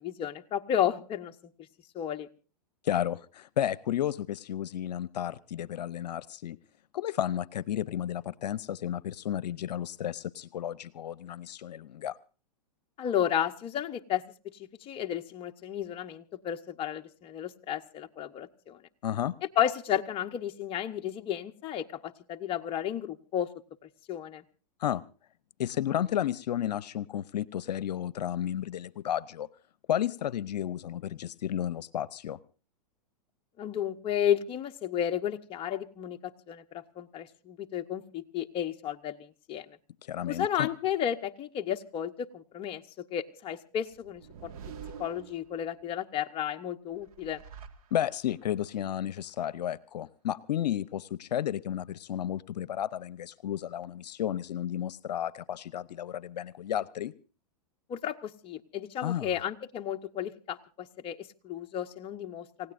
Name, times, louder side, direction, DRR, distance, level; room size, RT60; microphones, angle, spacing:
voice 1, 0.0-1.3 1.9-2.3 13.0-14.2 14.8-18.8 19.6-23.5 24.1-24.4 33.6-39.7 40.2-44.5 45.0-47.4 57.9-62.7, left 10 dB, 25° left, 5 dB, 0.9 m, -33 dB
voice 2, 2.8-6.6 6.9-12.2 19.0-19.3 24.8-25.0 25.6-29.5 29.9-32.4 40.0-40.7 47.9-57.1 59.0-59.3, left 11 dB, 80° left, 19 dB, 0.7 m, -32 dB
sound 1, 43.9-45.9 46.9-48.4, right 7 dB, 65° right, 1.8 m, -47 dB
29.0 x 16.5 x 2.6 m, 0.35 s
hypercardioid pair, 130°, 21 cm